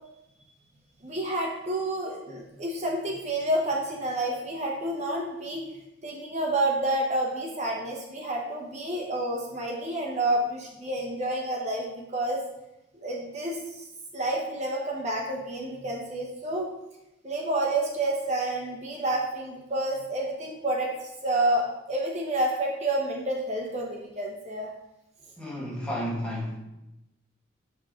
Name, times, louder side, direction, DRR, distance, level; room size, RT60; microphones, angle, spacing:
voice 1, 1.0-5.6 6.0-12.4 13.0-13.9 14.1-16.7 17.2-24.7, right 1 dB, 35° right, -1 dB, 1.0 m, -29 dB
voice 2, 25.4-26.6, equal, 5° left, -4 dB, 1.4 m, -32 dB
6.5 x 5.5 x 3.8 m, 0.91 s
head